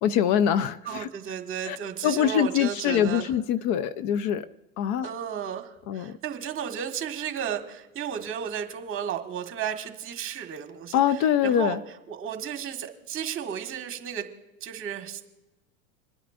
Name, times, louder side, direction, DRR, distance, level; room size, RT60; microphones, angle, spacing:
voice 1, 0.0-1.1 1.7-1.8 2.0-4.5 4.8-5.1 5.9-6.2 10.9-11.8, left 9 dB, 45° left, 0.6 m, -24 dB
voice 2, 0.8-3.3 5.0-11.8 12.1-14.3 14.6-15.2, right 8 dB, 30° right, 1.6 m, -34 dB
28.0 x 10.0 x 2.5 m
hypercardioid pair, 105°, 40 cm